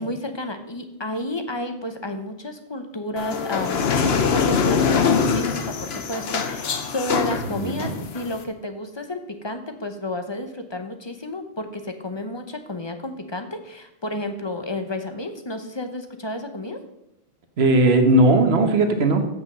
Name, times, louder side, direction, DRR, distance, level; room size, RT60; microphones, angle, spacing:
voice 1, 0.0-3.8 4.3-16.8, left 1 dB, 30° left, 7 dB, 0.8 m, -31 dB
sound 1, 3.2-8.4, left 6 dB, 80° left, 1.1 m, -23 dB
voice 2, 7.6-8.0 17.6-19.2, right 2 dB, 85° right, 6 dB, 1.3 m, -18 dB
8.1 x 6.2 x 6.2 m, 0.87 s
omnidirectional pair, 1.0 m